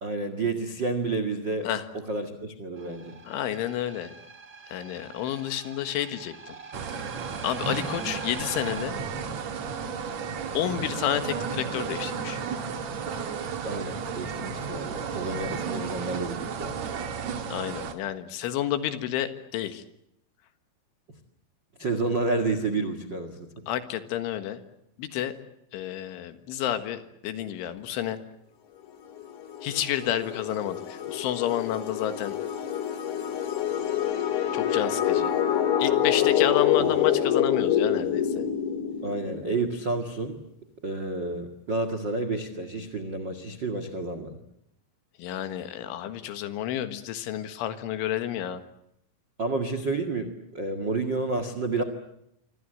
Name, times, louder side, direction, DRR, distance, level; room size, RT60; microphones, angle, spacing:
voice 1, 0.0-1.7 2.1-3.1 13.6-16.8 21.8-23.5 36.8-36.9 39.0-40.4 40.8-44.4 49.4-51.8, right 3 dB, 75° right, 10 dB, 1.0 m, -30 dB
sound 1, 2.8-8.8, right 4 dB, 20° right, 1.7 m, -44 dB
voice 2, 3.3-4.1 4.7-6.6 7.4-9.0 10.6-12.4 17.5-19.8 23.7-24.6 25.0-25.3 25.7-28.2 29.6-32.4 34.5-35.3 35.8-38.5 45.2-48.6, left 11 dB, 75° left, 10 dB, 3.9 m, -30 dB
sound 2, 6.7-17.9, right 6 dB, 55° right, 2.0 m, -33 dB
sound 3, 29.2-39.7, left 10 dB, 55° left, 2.5 m, -26 dB
26.0 x 25.5 x 7.9 m, 0.78 s
omnidirectional pair, 5.6 m